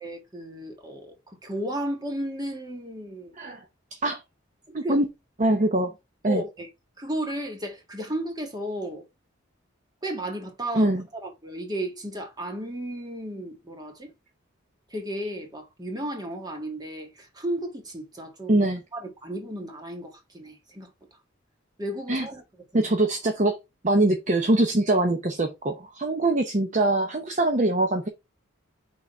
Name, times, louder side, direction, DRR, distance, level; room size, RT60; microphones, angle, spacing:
voice 1, 0.0-3.3 4.8-5.0 6.3-6.7 7.0-9.0 10.0-14.1 14.9-18.7 18.9-20.9 21.8-22.4, right 1 dB, 20° right, 1.5 m, -34 dB
voice 2, 3.9-4.2 4.7-5.1 5.4-5.9 6.2-6.4 10.7-11.0 18.5-18.8 22.1-22.3 22.7-23.6 23.8-28.1, right 2 dB, 35° right, 0.8 m, -23 dB
6.0 x 3.9 x 4.3 m
head